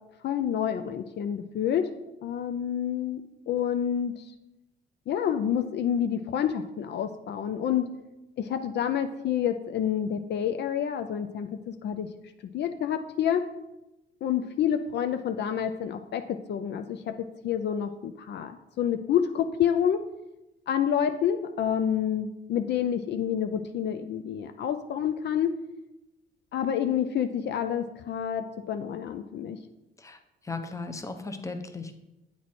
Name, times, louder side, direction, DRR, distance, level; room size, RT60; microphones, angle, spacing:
voice 1, 0.2-1.9 2.2-4.3 5.1-7.9 8.4-12.1 12.5-13.4 14.2-17.2 17.4-20.0 20.7-25.5 26.5-29.6, left 9 dB, 60° left, 8 dB, 0.4 m, -28 dB
voice 2, 30.4-32.0, left 3 dB, 15° left, 7 dB, 0.6 m, -36 dB
8.3 x 3.1 x 4.1 m, 0.95 s
cardioid pair, 90°, 20 cm